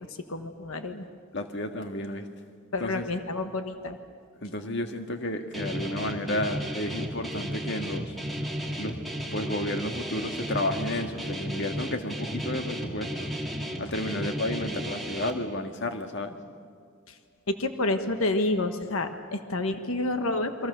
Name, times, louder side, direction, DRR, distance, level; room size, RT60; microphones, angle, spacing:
voice 1, 0.3-1.0 2.7-4.0 17.5-20.7, left 2 dB, 90° left, 7 dB, 1.4 m, -29 dB
voice 2, 1.3-2.3 2.8-3.1 4.4-8.2 8.8-13.3 13.8-16.4, left 1 dB, 55° left, 6 dB, 1.8 m, -32 dB
Guitar, 5.5-15.3, equal, ahead, 2.1 m, -34 dB
28.5 x 23.5 x 6.8 m, 2.2 s
head